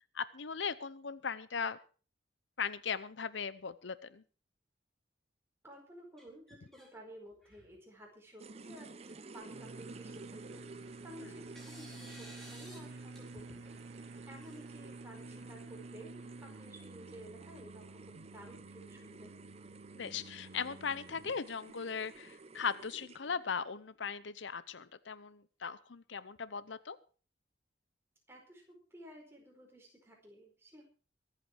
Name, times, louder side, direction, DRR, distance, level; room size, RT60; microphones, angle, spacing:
voice 1, 0.1-1.8 2.6-4.2 11.2-11.3 20.0-27.0, left 6 dB, 75° left, 16 dB, 0.7 m, -38 dB
voice 2, 5.6-10.6 11.0-19.6 28.3-30.8, right 1 dB, 15° right, 0 dB, 4.8 m, -54 dB
sound 1, 6.2-6.9 7.3-7.8 8.6-8.7 9.0-9.1 10.5-11.0 11.6-12.8 13.2-13.3 14.4-15.2, equal, ahead, 4.1 m, -55 dB
sound 2, 8.4-23.5, right 3 dB, 35° right, 0.7 m, -53 dB
sound 3, 9.5-21.4, right 3 dB, 70° right, 0.8 m, -51 dB
23.5 x 8.4 x 4.7 m, 0.38 s
head